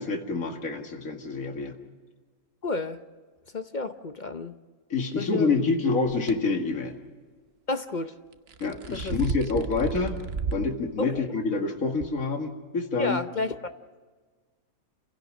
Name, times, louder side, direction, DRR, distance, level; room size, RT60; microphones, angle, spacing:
voice 1, 0.0-1.8 4.9-7.0 8.6-10.2 10.5-13.2, left 4 dB, 60° left, 3 dB, 2.4 m, -27 dB
voice 2, 2.6-3.0 3.5-4.6 5.1-5.5 7.7-8.1 8.9-9.2 11.0-11.3 13.0-13.6, left 3 dB, 45° left, 9 dB, 0.6 m, -31 dB
sound 1, 6.1-6.3 8.3-10.7 11.1-11.2 12.0-12.1, right 5 dB, 45° right, 1.0 m, -32 dB
28.5 x 17.0 x 6.3 m, 1.5 s
omnidirectional pair, 1.7 m